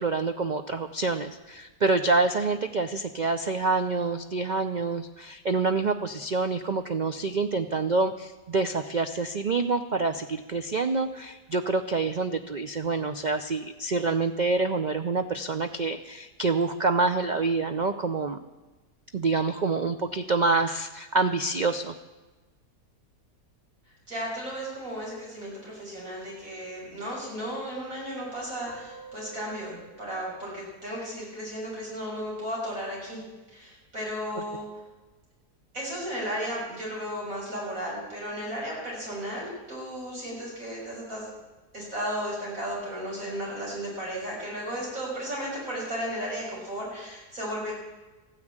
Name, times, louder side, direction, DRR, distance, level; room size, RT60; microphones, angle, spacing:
voice 1, 0.0-18.4 19.1-21.9 34.4-34.5, right 3 dB, 85° right, 8 dB, 0.4 m, -27 dB
voice 2, 24.1-33.2 33.5-34.7 35.7-41.2 41.7-47.8, equal, 55° right, -5 dB, 7.2 m, -34 dB
sound 1, 28.7-31.8, right 4 dB, 35° right, 4.3 m, -50 dB
14.5 x 9.9 x 8.8 m, 1.2 s
omnidirectional pair, 1.7 m